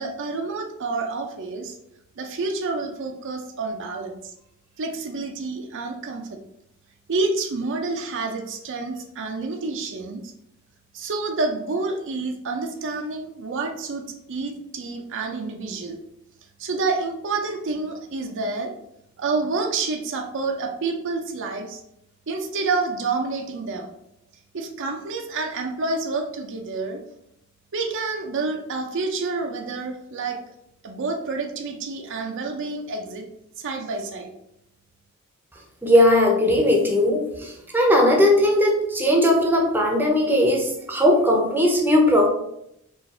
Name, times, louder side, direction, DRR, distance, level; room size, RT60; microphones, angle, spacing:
voice 1, 0.0-1.8 2.2-4.3 4.8-6.4 7.1-10.3 10.9-16.0 16.6-18.7 19.2-21.8 22.3-23.9 24.5-27.0 27.7-30.4 30.8-33.3 33.6-34.3, right 3 dB, 55° right, 3 dB, 0.5 m, -28 dB
voice 2, 35.8-42.3, left 1 dB, 10° right, 0 dB, 0.7 m, -18 dB
4.5 x 2.5 x 4.2 m, 0.77 s
head